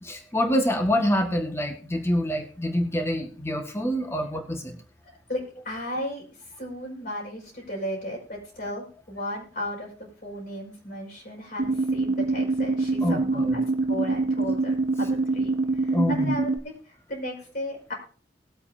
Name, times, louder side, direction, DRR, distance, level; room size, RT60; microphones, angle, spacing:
voice 1, 0.0-4.8 13.0-13.6 15.9-16.4, equal, 15° left, 4 dB, 1.6 m, -26 dB
voice 2, 5.0-17.9, equal, 55° left, -2 dB, 5.3 m, -35 dB
sound 1, 11.6-16.6, right 3 dB, 70° right, 0.9 m, -25 dB
19.5 x 8.3 x 2.7 m, 0.40 s
head